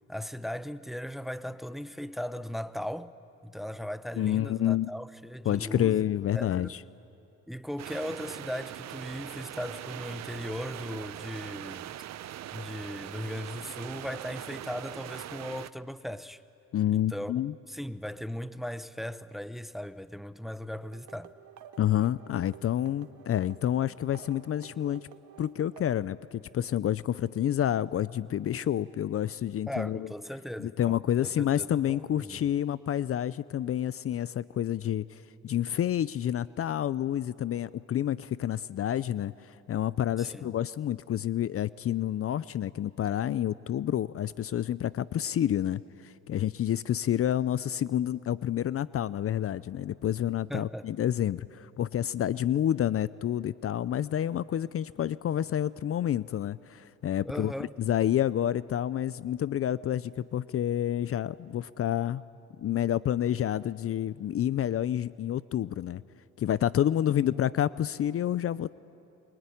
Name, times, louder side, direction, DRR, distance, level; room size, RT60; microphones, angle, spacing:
voice 1, 0.1-3.1 3.4-6.0 6.3-6.8 7.5-11.9 12.5-16.4 16.9-17.4 17.7-21.3 29.7-32.4 40.2-40.5 50.5-50.9 57.2-57.7, equal, ahead, 0.8 m, -38 dB
voice 2, 4.2-4.9 5.5-6.8 16.7-17.5 21.8-25.1 25.4-30.1 30.6-57.5 57.8-62.2 62.6-66.0 66.4-68.7, left 11 dB, 50° left, 0.5 m, -29 dB
sound 1, 7.8-15.7, right 12 dB, 60° right, 0.7 m, -41 dB
sound 2, 20.9-26.1, right 9 dB, 80° right, 1.7 m, -52 dB
25.0 x 24.0 x 9.9 m
cardioid pair, 90°, 30 cm